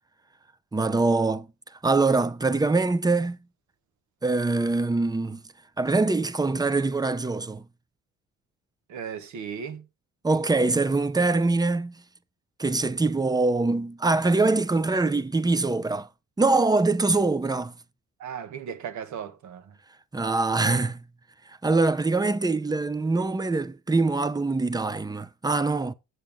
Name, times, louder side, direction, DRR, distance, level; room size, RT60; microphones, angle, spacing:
voice 1, 0.7-1.5 1.8-3.4 4.2-5.4 5.8-7.6 10.2-11.9 12.6-16.1 16.4-17.7 20.1-21.0 21.6-25.9, right 3 dB, 15° right, 0.7 m, -23 dB
voice 2, 8.9-9.8 18.2-19.7, right 7 dB, 70° right, 1.4 m, -36 dB
7.9 x 7.3 x 3.6 m
cardioid pair, 90°, 30 cm